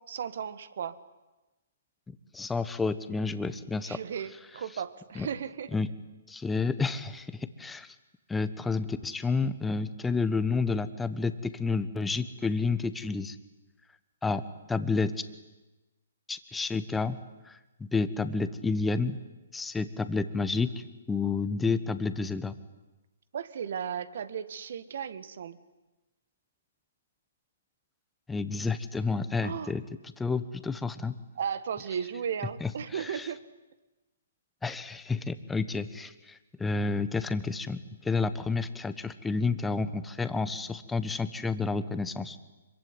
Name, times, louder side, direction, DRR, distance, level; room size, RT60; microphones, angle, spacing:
voice 1, 0.1-1.0 3.9-5.7 23.3-25.6 29.4-29.7 31.4-33.4, right 7 dB, 60° right, 14 dB, 1.8 m, -35 dB
voice 2, 2.1-4.0 5.1-5.3 5.7-5.9 6.3-7.9 8.3-13.3 14.2-14.4 14.7-15.2 16.3-17.2 17.4-19.2 19.5-20.7 21.1-22.5 28.3-31.1 32.6-33.3 34.6-42.4, left 4 dB, 10° left, 12 dB, 1.4 m, -30 dB
25.5 x 23.0 x 9.7 m, 1.1 s
hypercardioid pair, 135°, 0 cm